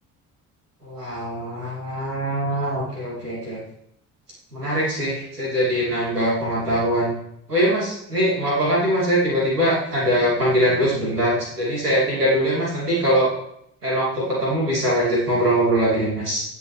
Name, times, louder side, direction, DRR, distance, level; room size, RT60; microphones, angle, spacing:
voice 1, 0.8-3.6 4.5-7.1 7.5-13.3 13.8-16.4, equal, 90° right, -6 dB, 2.6 m, -22 dB
15.0 x 9.5 x 3.2 m, 0.74 s
figure-of-eight pair, 50°, 45 cm